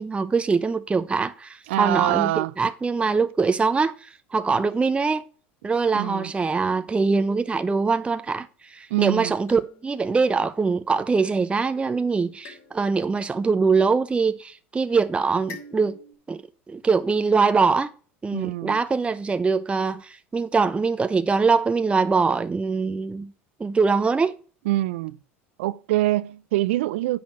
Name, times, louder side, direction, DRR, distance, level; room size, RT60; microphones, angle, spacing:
voice 1, 0.0-5.3 5.6-16.0 16.3-16.4 16.7-17.9 18.2-23.3 23.6-24.3, right 4 dB, 15° right, 0.6 m, -23 dB
voice 2, 1.7-2.5 5.9-6.3 8.9-9.3 18.3-18.8 24.7-25.2 25.6-27.2, right 16 dB, 75° right, 0.5 m, -24 dB
sound 1, 9.5-11.1 12.4-14.5 15.5-16.1, left 3 dB, 55° left, 3.8 m, -48 dB
9.5 x 4.3 x 6.2 m
hypercardioid pair, 85°, 7 cm